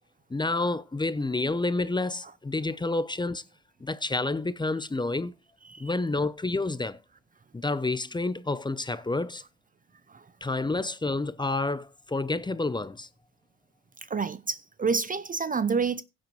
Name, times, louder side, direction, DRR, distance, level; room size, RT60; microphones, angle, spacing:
voice 1, 0.3-3.4 3.8-5.3 5.8-7.0 7.5-9.4 10.4-13.1, left 2 dB, 15° left, 0.7 m, -29 dB
voice 2, 14.1-16.0, right 5 dB, 30° right, 0.6 m, -28 dB
16.0 x 7.6 x 3.1 m
cardioid pair, 90°, 30 cm